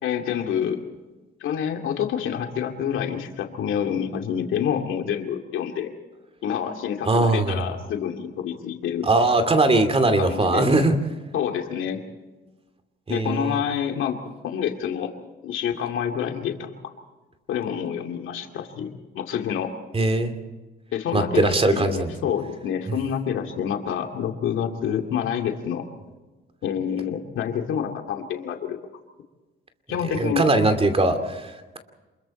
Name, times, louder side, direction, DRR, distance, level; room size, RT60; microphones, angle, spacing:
voice 1, 0.0-0.8 1.4-5.9 6.4-9.1 10.2-10.6 11.3-12.0 13.1-15.1 15.4-16.7 17.5-19.7 20.9-25.9 26.6-28.8 29.9-30.4, left 8 dB, 80° left, 4 dB, 2.4 m, -27 dB
voice 2, 7.1-7.6 9.0-10.9 13.1-13.6 19.9-20.3 21.1-22.1 30.1-31.8, right 2 dB, 30° right, 8 dB, 2.6 m, -21 dB
27.5 x 22.0 x 4.4 m, 1.2 s
cardioid pair, 90°, 20 cm